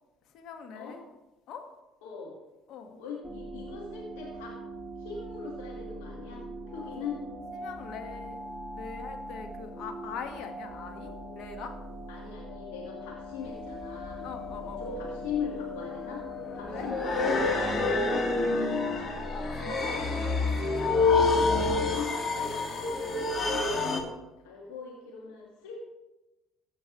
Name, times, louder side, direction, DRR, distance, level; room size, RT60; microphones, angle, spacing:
voice 1, 0.3-1.0 1.5-1.6 2.7-3.0 7.6-8.4 8.7-11.7 14.2-15.0 16.7-16.9 19.3-21.5, left 6 dB, 70° left, 5 dB, 1.3 m, -42 dB
voice 2, 2.0-2.4 3.0-4.6 5.0-7.2 12.1-14.3 14.6-16.2 16.5-19.1 21.5-24.1 24.4-25.9, left 5 dB, 90° left, -2 dB, 1.6 m, -40 dB
sound 1, 3.2-19.1, equal, 10° left, 2.3 m, -41 dB
sound 2, 13.5-13.6 14.8-24.0, left 3 dB, 40° left, 1.8 m, -28 dB
15.0 x 7.6 x 3.0 m, 1.0 s
supercardioid pair, 70°, 0 cm